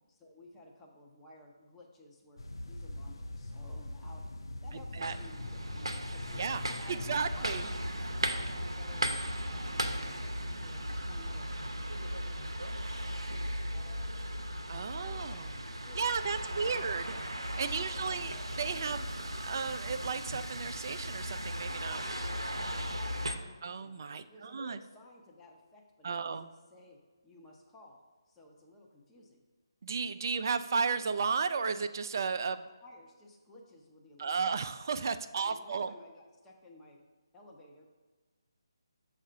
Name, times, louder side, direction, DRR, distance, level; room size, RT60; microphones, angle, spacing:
voice 1, 0.1-2.4 2.7-4.3 4.6-7.9 8.3-9.2 9.5-12.7 13.0-14.4 14.7-17.2 17.7-18.3 18.9-19.2 21.9-24.0 24.3-29.4 29.9-30.1 30.4-30.6 32.8-34.6 35.4-37.0 37.3-37.9, left 2 dB, 10° left, -2 dB, 0.7 m, -56 dB
sound 1, 2.4-7.6, left 2 dB, 70° left, 0.5 m, -42 dB
sound 2, 5.0-23.4, equal, 80° right, 0.6 m, -37 dB
voice 2, 6.9-7.7 14.7-15.5 16.0-17.0 17.6-19.1 19.4-22.0 22.6-23.0 23.6-24.8 26.0-26.5 29.8-32.6 34.2-35.9, right 5 dB, 45° right, 11 dB, 0.3 m, -34 dB
7.1 x 2.5 x 5.6 m, 1.3 s
figure-of-eight pair, 150°, 3 cm